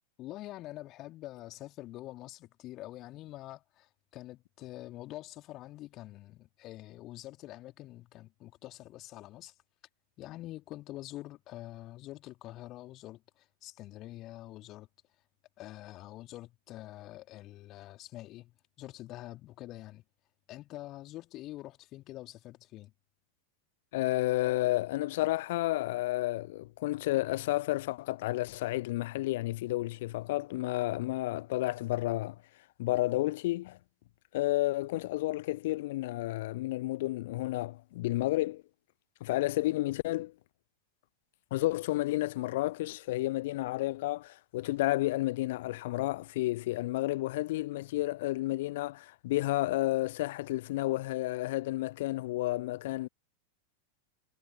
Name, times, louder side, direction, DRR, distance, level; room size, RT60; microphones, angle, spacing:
voice 1, 0.2-9.5 10.2-14.9 15.6-20.0 20.5-22.9, left 16 dB, 35° left, 2.9 m, -46 dB
voice 2, 23.9-32.4 32.8-33.8 34.3-38.6 39.2-40.3 41.5-53.1, left 17 dB, 55° left, 0.9 m, -31 dB
figure-of-eight pair, 90°, 0 cm